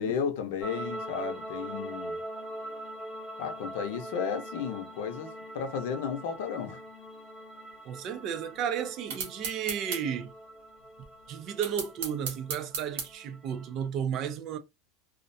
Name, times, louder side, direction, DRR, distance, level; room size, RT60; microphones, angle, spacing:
voice 1, 0.0-2.2 3.4-6.8, left 7 dB, 65° left, 0.6 m, -33 dB
sound 1, 0.6-13.9, right 1 dB, 5° right, 0.8 m, -43 dB
voice 2, 7.8-10.3 11.3-14.6, right 8 dB, 35° right, 0.4 m, -33 dB
sound 2, 9.1-10.0 11.6-13.1, right 5 dB, 80° right, 1.0 m, -34 dB
2.3 x 2.1 x 2.6 m
supercardioid pair, 170°, 0 cm